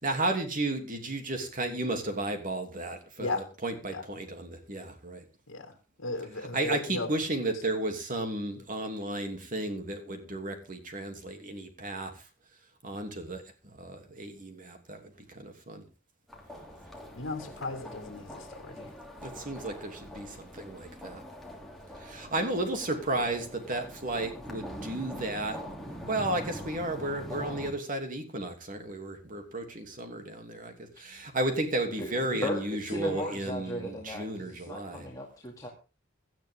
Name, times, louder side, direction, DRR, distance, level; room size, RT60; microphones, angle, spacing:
voice 1, 0.0-5.2 6.3-12.3 12.8-15.8 19.2-21.2 22.0-25.6 26.1-35.1, right 2 dB, 45° right, 2.9 m, -33 dB
voice 2, 6.0-7.1 17.1-18.9, left 2 dB, 80° left, 2.1 m, -35 dB
sound 1, 16.3-27.7, equal, ahead, 3.1 m, -43 dB
voice 3, 32.4-35.7, left 1 dB, 15° left, 2.5 m, -36 dB
17.5 x 12.0 x 3.7 m
head